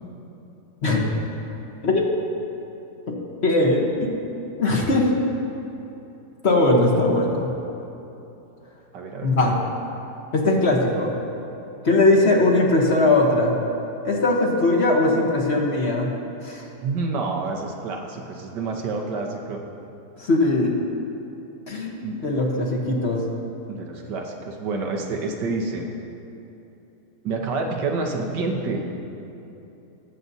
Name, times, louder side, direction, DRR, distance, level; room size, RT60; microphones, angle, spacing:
voice 1, 3.4-4.2 4.6-5.1 6.4-7.5 9.2-9.5 10.3-11.1 11.8-13.5 14.0-16.1 16.4-16.6 20.2-20.7 21.7-23.2, left 2 dB, 45° left, -1 dB, 1.2 m, -20 dB
voice 2, 8.9-9.3 16.8-19.6 22.0-22.2 23.7-25.9 27.2-28.9, right 3 dB, 90° right, 2 dB, 1.6 m, -28 dB
19.0 x 7.4 x 2.7 m, 3.0 s
omnidirectional pair, 1.8 m